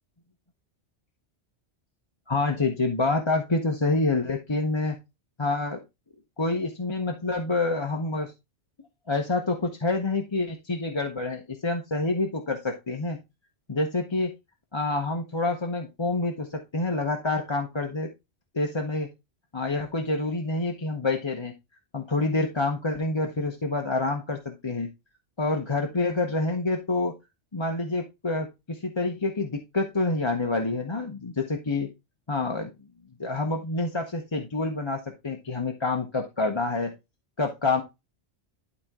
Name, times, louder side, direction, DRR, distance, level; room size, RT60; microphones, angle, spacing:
voice 1, 2.3-5.0 5.4-5.8 6.4-8.3 9.1-13.2 13.7-14.3 14.7-18.1 18.5-19.1 19.5-21.5 21.9-24.9 25.4-27.1 27.5-31.9 32.3-32.7 33.2-36.9 37.4-37.8, left 3 dB, 30° left, 2 dB, 0.9 m, -27 dB
12.0 x 4.1 x 3.6 m, 0.24 s
omnidirectional pair, 1.1 m